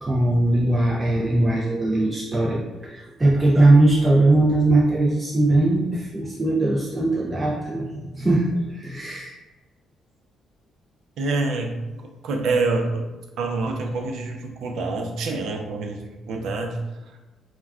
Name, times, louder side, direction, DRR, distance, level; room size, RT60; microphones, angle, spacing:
voice 1, 0.0-9.4, right 2 dB, 20° right, -4 dB, 0.4 m, -20 dB
voice 2, 11.2-13.1 13.4-16.8, right 3 dB, 75° right, 2 dB, 0.5 m, -26 dB
2.3 x 2.2 x 3.5 m, 1.1 s
cardioid pair, 90°, 0 cm